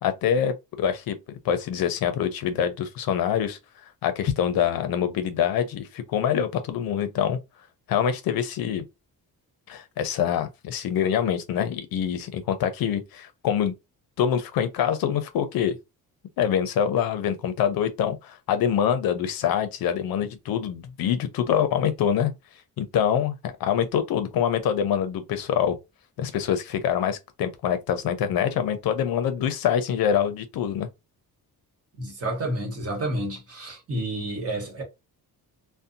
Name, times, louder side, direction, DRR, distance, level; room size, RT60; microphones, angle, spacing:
voice 1, 0.0-1.2 1.4-3.6 4.0-7.4 7.9-8.8 9.7-13.7 14.2-15.8 16.4-22.3 22.8-25.8 26.2-30.9, left 8 dB, 65° left, 0.6 m, -25 dB
voice 2, 32.0-34.8, right 1 dB, 40° right, 1.1 m, -30 dB
2.6 x 2.1 x 2.5 m
cardioid pair, 170°, 38 cm